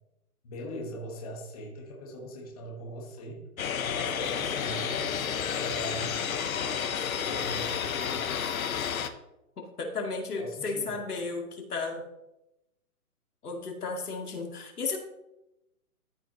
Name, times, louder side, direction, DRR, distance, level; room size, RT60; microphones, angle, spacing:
voice 1, 0.4-3.5 3.9-6.1 6.5-8.3 10.4-11.0, equal, 25° left, -2 dB, 1.4 m, -40 dB
sound 1, 3.6-9.1, left 7 dB, 65° left, 0.9 m, -31 dB
voice 2, 9.6-12.1 13.4-15.0, left 4 dB, 90° left, 1 dB, 2.2 m, -34 dB
13.5 x 5.4 x 3.0 m, 0.91 s
hypercardioid pair, 170°, 44 cm